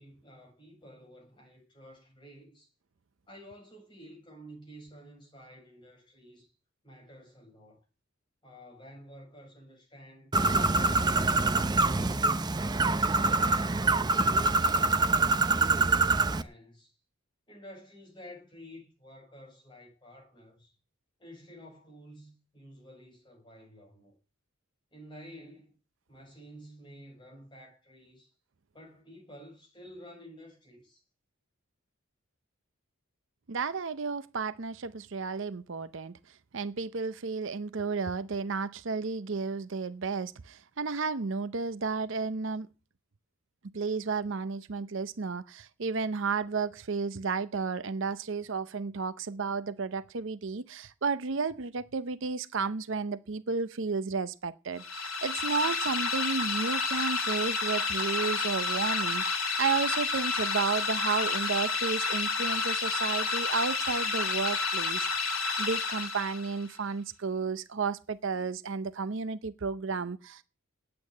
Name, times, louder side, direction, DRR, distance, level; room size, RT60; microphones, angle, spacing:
voice 1, 0.0-2.7 3.3-6.5 6.8-7.8 8.4-10.3 10.7-12.2 13.0-14.2 14.6-16.9 17.5-20.7 21.2-24.1 24.9-25.7 26.1-28.3 28.7-31.0, equal, 25° left, 7.6 m, -51 dB
Bird, 10.3-16.4, right 3 dB, 20° right, 0.6 m, -25 dB
voice 2, 33.5-36.1 36.5-42.7 43.7-70.4, right 4 dB, 65° right, 0.6 m, -32 dB
sound 1, 54.8-66.6, left 4 dB, 85° left, 2.5 m, -30 dB
9.1 x 8.6 x 9.5 m
head